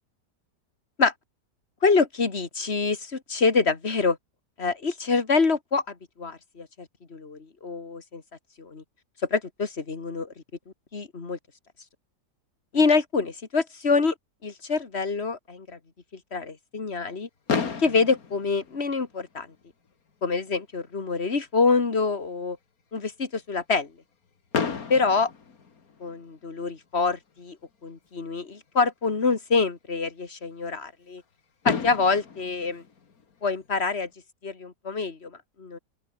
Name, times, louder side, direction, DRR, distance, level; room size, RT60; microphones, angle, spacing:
voice 1, 1.8-4.2 4.6-6.7 7.1-8.2 8.6-8.8 9.3-10.3 10.9-11.4 12.7-14.1 14.4-15.7 16.3-17.3 17.8-19.5 20.2-22.6 22.9-23.9 24.9-25.3 26.0-27.6 27.8-31.2 31.6-32.8 33.4-34.1 34.4-35.3 35.6-35.8, left 4 dB, 35° left, 2.5 m, -25 dB
Fireworks, 17.5-19.5 20.3-20.4 20.6-20.8 21.1-21.2 24.5-26.4 28.1-28.2 31.2-31.3 31.6-33.9, left 5 dB, 55° left, 2.4 m, -32 dB
omnidirectional pair, 1.8 m